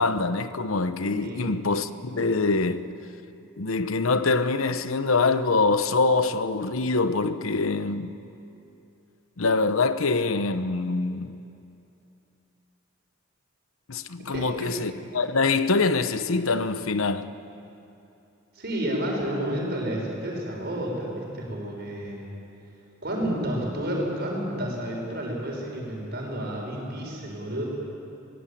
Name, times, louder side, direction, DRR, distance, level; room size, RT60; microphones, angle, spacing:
voice 1, 0.0-2.9 3.6-8.1 9.4-11.4 13.9-17.3, left 3 dB, 75° left, 0.9 m, -24 dB
voice 2, 14.2-14.7 18.5-22.2 23.0-27.6, right 1 dB, 50° right, 5.8 m, -30 dB
23.5 x 18.5 x 8.6 m
head